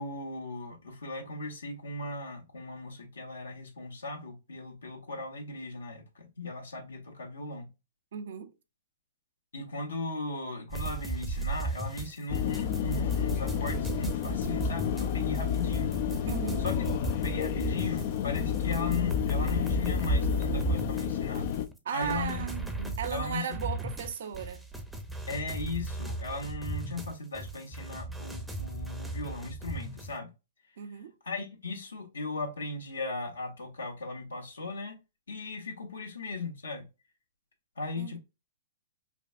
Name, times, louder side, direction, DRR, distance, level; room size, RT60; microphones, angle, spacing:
voice 1, 0.0-7.7 9.5-15.9 16.6-16.9 17.2-21.5 21.9-22.4 22.8-23.5 25.3-30.3 31.2-35.0 35.3-36.8 37.8-38.2, left 3 dB, 80° left, 1.4 m, -37 dB
voice 2, 8.1-8.5 16.3-16.6 21.8-22.7 23.0-24.6 30.8-31.1 38.0-38.2, right 7 dB, 65° right, 0.6 m, -36 dB
sound 1, 10.7-30.1, right 3 dB, 5° right, 0.7 m, -36 dB
sound 2, 12.3-21.7, left 9 dB, 50° left, 0.5 m, -30 dB
5.1 x 2.3 x 2.6 m
hypercardioid pair, 115°, 0 cm